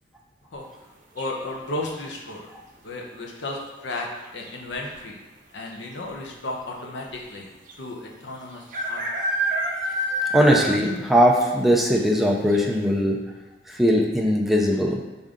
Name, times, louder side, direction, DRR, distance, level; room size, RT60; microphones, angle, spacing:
voice 1, 1.1-2.5 2.8-5.2 5.5-7.5 7.8-9.0, left 2 dB, 70° left, 0 dB, 0.7 m, -34 dB
sound 1, 1.2-1.6 3.5-3.8 4.1-4.2 4.4-5.0 5.7-5.8 6.0-6.1 7.7-7.8 8.7-11.0 11.4-11.5 11.9-12.0 12.5-12.6, right 1 dB, 45° right, 0.6 m, -27 dB
voice 2, 10.3-13.2 13.7-15.0, equal, ahead, -1 dB, 0.4 m, -20 dB
5.0 x 2.7 x 3.6 m, 1.1 s
head